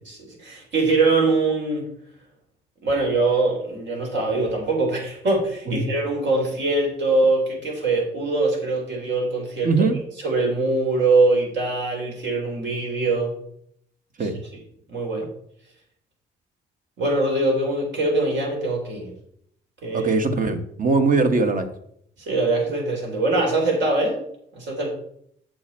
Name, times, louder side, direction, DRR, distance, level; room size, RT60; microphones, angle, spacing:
voice 1, 0.1-1.8 2.8-9.9 10.2-13.3 14.2-14.3 14.9-15.2 17.0-19.1 19.8-20.1 22.2-24.2 24.5-24.9, right 2 dB, 65° right, 0 dB, 3.9 m, -22 dB
voice 2, 9.6-10.0 14.2-14.3 19.9-21.7, right 3 dB, 45° right, 8 dB, 1.3 m, -21 dB
7.6 x 6.9 x 4.3 m, 0.69 s
cardioid pair, 90°, 20 cm